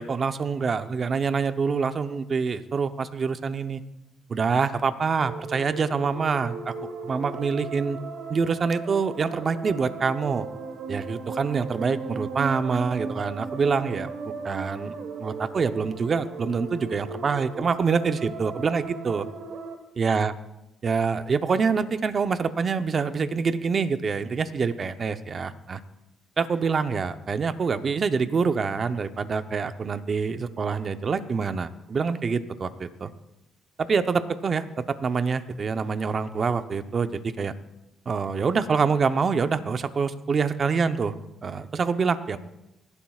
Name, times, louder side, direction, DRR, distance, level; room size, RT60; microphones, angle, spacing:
voice 1, 0.0-3.8 4.3-6.7 7.0-8.0 8.3-10.5 10.9-14.1 14.4-14.9 15.2-19.3 20.0-20.3 20.8-25.8 26.4-33.1 33.8-34.7 35.0-37.5 38.1-41.1 41.4-42.4, right 5 dB, 45° right, 10 dB, 0.7 m, -26 dB
sound 1, 5.2-19.8, right 4 dB, 75° right, 1.5 m, -36 dB
26.0 x 11.5 x 2.4 m, 0.91 s
cardioid pair, 90°, 0 cm